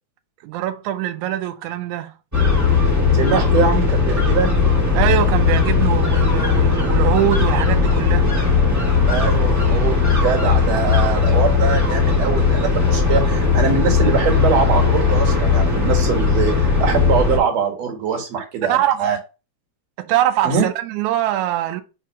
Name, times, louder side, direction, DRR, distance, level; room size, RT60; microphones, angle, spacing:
voice 1, 0.4-2.2 5.0-8.3 18.7-19.0 20.0-21.8, right 13 dB, 85° right, 2.1 m, -22 dB
sound 1, 2.3-17.4, left 5 dB, 25° right, 0.4 m, -17 dB
voice 2, 3.1-4.5 9.1-19.2 20.4-20.7, right 5 dB, 65° right, 2.8 m, -22 dB
4.5 x 4.2 x 5.3 m
omnidirectional pair, 3.3 m